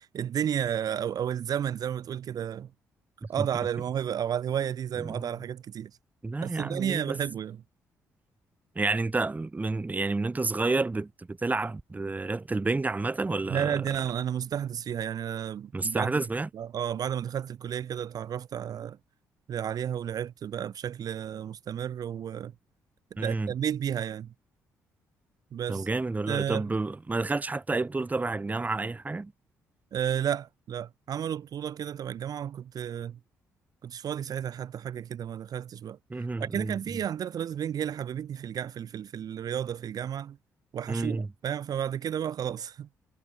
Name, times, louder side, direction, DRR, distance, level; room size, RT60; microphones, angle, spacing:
voice 1, 0.0-2.7 3.3-5.9 6.4-7.6 13.5-16.2 16.5-19.0 19.5-22.5 23.2-24.3 25.5-25.9 26.3-26.7 29.9-33.2 33.8-40.4 40.7-42.9, right 9 dB, 55° right, 0.5 m, -32 dB
voice 2, 5.0-5.3 6.2-7.2 8.8-14.0 15.7-16.5 23.2-23.5 25.7-29.3 36.1-37.0 40.9-41.3, right 3 dB, 20° right, 0.7 m, -30 dB
hypercardioid pair, 50°, 8 cm